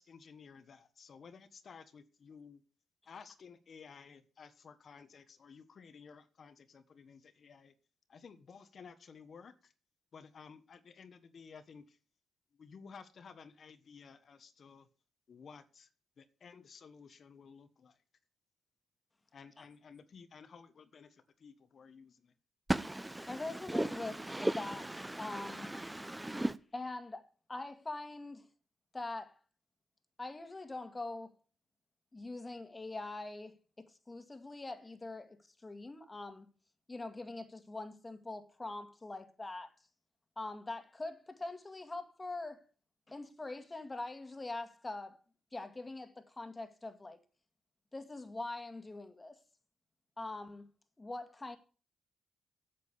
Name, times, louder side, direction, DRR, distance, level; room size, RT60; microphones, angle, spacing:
voice 1, 0.0-2.6 3.1-7.7 8.1-9.7 10.1-12.0 12.5-14.9 15.3-15.9 16.2-18.0 19.3-22.3, left 6 dB, 55° left, 1.2 m, -55 dB
voice 2, 22.7-26.6, right 1 dB, 10° right, 0.6 m, -36 dB
voice 3, 23.3-24.1 24.6-24.8 25.2-25.7 26.7-28.5 28.9-29.3 30.2-31.3 32.1-35.4 35.6-36.5 36.9-39.7 40.4-42.6 43.1-45.2 45.5-47.2 47.9-49.4 50.2-50.7 51.0-51.6, left 2 dB, 25° left, 2.0 m, -43 dB
8.7 x 7.5 x 8.4 m
supercardioid pair, 65°, 0 cm